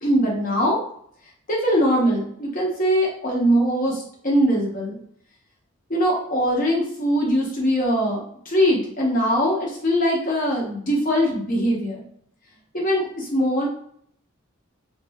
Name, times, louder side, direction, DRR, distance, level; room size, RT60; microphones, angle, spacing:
voice 1, 0.0-0.8 1.5-5.0 5.9-12.0 12.7-13.7, equal, 40° left, -2 dB, 0.9 m, -21 dB
2.5 x 2.0 x 3.4 m, 0.63 s
head